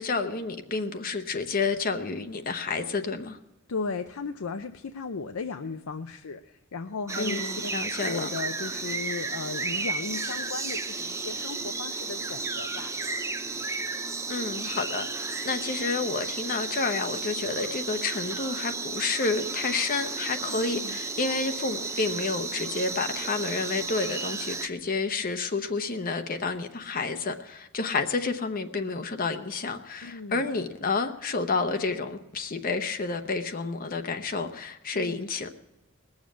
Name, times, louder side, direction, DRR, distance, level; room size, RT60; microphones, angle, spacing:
voice 1, 0.0-3.4 7.2-8.3 14.3-35.5, left 4 dB, 40° left, 0.8 m, -30 dB
voice 2, 3.7-7.7 8.0-12.9 20.5-21.0 30.0-30.4 34.9-35.3, left 4 dB, 70° left, 0.6 m, -36 dB
sound 1, 7.1-24.7, right 3 dB, 15° right, 0.5 m, -33 dB
20.0 x 7.3 x 7.5 m
head